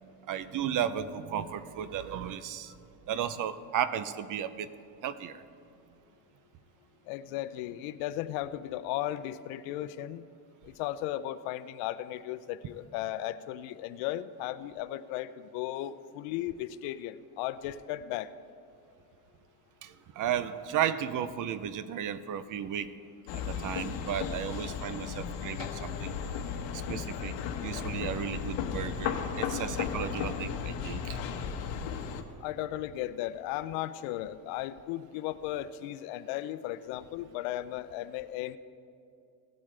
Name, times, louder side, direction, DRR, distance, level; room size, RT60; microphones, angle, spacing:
voice 1, 0.0-2.7 3.1-4.7 5.0-5.4 19.8-22.9 23.3-26.1 26.9-27.3 27.6-31.2, right 9 dB, 45° right, 14 dB, 0.5 m, -34 dB
voice 2, 7.1-10.2 10.6-18.3 32.4-38.6, left 13 dB, 85° left, 14 dB, 0.6 m, -36 dB
sound 1, 23.3-32.2, left 7 dB, 70° left, 1.1 m, -35 dB
17.5 x 8.6 x 3.3 m, 2.5 s
cardioid pair, 125°, 46 cm